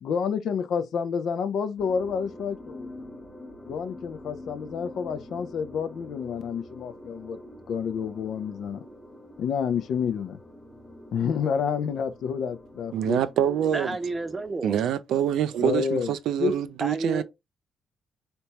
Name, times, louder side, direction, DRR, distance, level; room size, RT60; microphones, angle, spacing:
voice 1, 0.0-3.1 3.6-7.4 7.7-8.8 9.4-10.4 11.1-13.2 13.9-14.0 15.6-16.1 16.4-16.5, left 6 dB, 70° left, 0.5 m, -29 dB
sound 1, 1.8-14.5, left 1 dB, 5° left, 1.0 m, -46 dB
voice 2, 12.9-13.9 14.6-17.2, right 10 dB, 80° right, 0.3 m, -25 dB
voice 3, 13.7-14.8 16.8-17.2, right 2 dB, 25° right, 0.7 m, -30 dB
3.3 x 2.9 x 2.9 m
cardioid pair, 90°, 0 cm